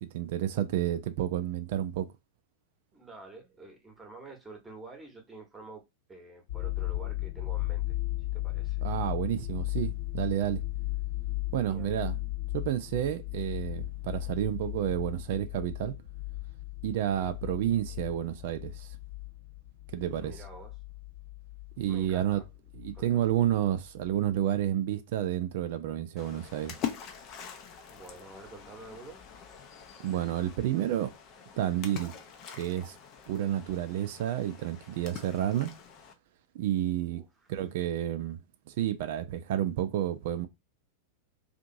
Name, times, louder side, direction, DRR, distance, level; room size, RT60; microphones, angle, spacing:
voice 1, 0.0-2.1 8.8-10.6 11.5-12.2 12.5-15.9 16.8-18.9 19.9-20.3 21.8-22.4 22.7-26.8 30.0-31.1 31.6-32.2 32.5-33.0 33.3-35.7 36.5-37.2 37.5-38.4 38.7-40.5, right 11 dB, 50° right, 0.4 m, -30 dB
voice 2, 2.9-5.8 6.1-8.0 8.3-8.8 11.6-11.9 20.2-20.8 21.9-22.5 22.9-23.1 27.9-29.2 37.1-37.5, right 3 dB, 10° right, 1.0 m, -48 dB
sound 1, 6.5-23.5 23.8-24.2, left 17 dB, 55° left, 0.8 m, -36 dB
Splash splatter, 26.2-36.1, left 9 dB, 40° left, 0.5 m, -44 dB
2.7 x 2.5 x 2.6 m
figure-of-eight pair, 90°, 0 cm